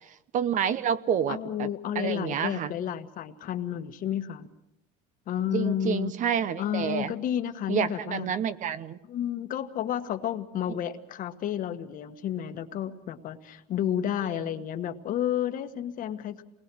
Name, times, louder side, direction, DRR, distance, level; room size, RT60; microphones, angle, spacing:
voice 1, 0.3-1.7 1.9-2.7 5.5-7.1 7.7-9.0 14.3-14.4, right 8 dB, 45° right, 14 dB, 0.9 m, -28 dB
voice 2, 1.3-4.5 5.3-6.1 6.6-8.3 9.1-16.4, left 10 dB, 45° left, 9 dB, 1.4 m, -31 dB
28.0 x 20.5 x 6.2 m, 0.88 s
cardioid pair, 130°, 19 cm